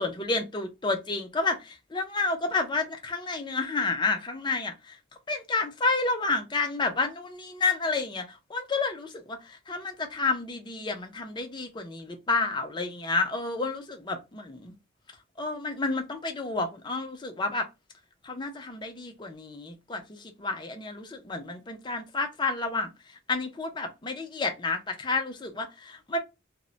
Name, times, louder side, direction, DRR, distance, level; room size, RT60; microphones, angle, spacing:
voice 1, 0.0-5.0 5.3-8.2 8.5-14.7 15.4-17.7 18.2-22.9 23.3-26.2, left 3 dB, 25° left, 0.5 m, -30 dB
2.1 x 2.0 x 3.7 m
head